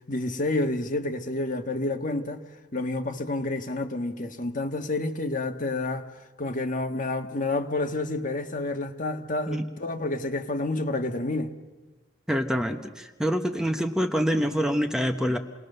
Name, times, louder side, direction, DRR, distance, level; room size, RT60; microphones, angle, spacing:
voice 1, 0.1-2.4 2.7-6.1 6.4-11.5, left 2 dB, 45° left, 1.5 m, -29 dB
voice 2, 12.3-15.4, equal, 5° right, 0.9 m, -26 dB
28.5 x 20.0 x 6.7 m
head